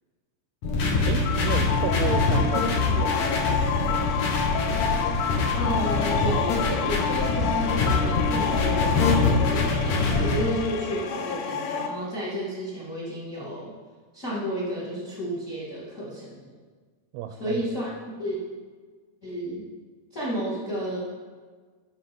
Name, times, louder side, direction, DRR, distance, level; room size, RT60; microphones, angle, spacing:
sound 1, 0.6-10.4, left 3 dB, 65° left, 1.8 m, -24 dB
voice 1, 1.0-4.0 17.1-17.6, right 9 dB, 85° right, 8 dB, 2.9 m, -33 dB
sound 2, 1.2-11.9, left 7 dB, 80° left, 2.8 m, -29 dB
voice 2, 5.5-13.7 14.1-16.5 17.4-17.9 18.2-18.4 19.2-19.6 20.1-21.0, equal, 35° left, -7 dB, 1.4 m, -32 dB
11.0 x 4.2 x 6.0 m, 1.5 s
omnidirectional pair, 5.4 m